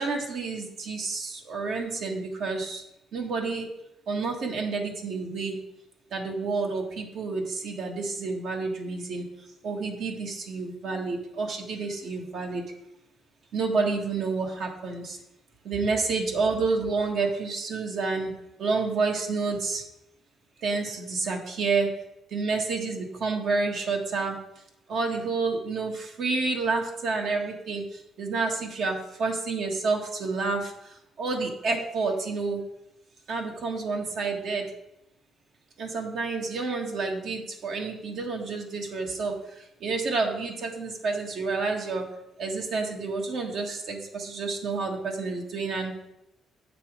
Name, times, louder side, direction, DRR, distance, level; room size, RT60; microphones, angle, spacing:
voice 1, 0.0-2.8 3.1-3.7 4.1-5.6 6.1-9.3 9.6-12.7 13.5-15.2 15.6-18.3 18.6-19.8 20.6-21.9 22.3-24.4 24.9-32.6 33.3-34.7 35.8-42.0 42.4-45.9, right 4 dB, 70° right, 1 dB, 1.5 m, -29 dB
8.0 x 5.9 x 4.9 m, 0.87 s
cardioid pair, 90°, 0 cm